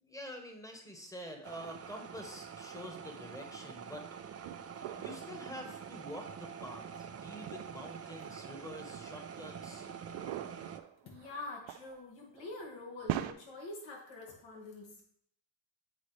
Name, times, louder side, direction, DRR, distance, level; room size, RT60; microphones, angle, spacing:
voice 1, 0.0-4.1 4.9-9.9, equal, 5° left, 4 dB, 1.3 m, -47 dB
sound 1, 1.4-10.8, right 7 dB, 35° right, 0.6 m, -46 dB
sound 2, 1.6-1.7 2.9-3.0 4.1-5.6 6.0-6.1 7.3-7.6 8.7-8.8 10.1-12.0 12.3-12.6 12.9-13.3, right 13 dB, 75° right, 0.6 m, -41 dB
voice 2, 11.0-15.0, left 2 dB, 70° left, -1 dB, 2.0 m, -46 dB
8.3 x 4.0 x 3.2 m, 0.66 s
cardioid pair, 70°, 46 cm